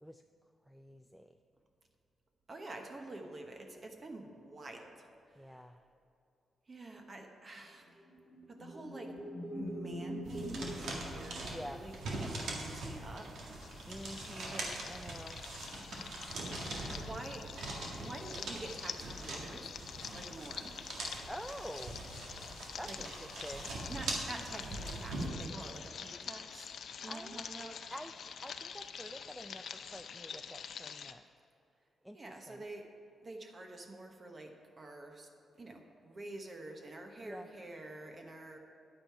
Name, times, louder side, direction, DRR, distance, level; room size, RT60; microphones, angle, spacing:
voice 1, 0.7-1.3 5.4-5.8 11.5-11.8 13.9-15.4 21.2-22.0 22.8-23.8 27.1-28.1 28.4-31.2 32.0-32.6 37.2-37.5, equal, ahead, 6 dB, 0.4 m, -48 dB
voice 2, 2.5-5.6 6.7-8.0 8.5-9.2 9.5-13.4 14.5-14.8 16.7-17.7 18.0-19.8 20.1-20.8 22.8-23.0 23.9-26.7 27.0-27.8 32.1-32.9 33.2-35.3 35.6-38.6, right 2 dB, 35° right, 3 dB, 1.0 m, -48 dB
sound 1, 8.0-12.0, equal, 15° right, 2.0 m, -43 dB
sound 2, 10.2-25.3, right 2 dB, 80° right, 1.8 m, -42 dB
sound 3, 13.6-31.1, left 7 dB, 65° left, 0.5 m, -47 dB
10.0 x 8.8 x 4.7 m, 2.8 s
cardioid pair, 100°, 0 cm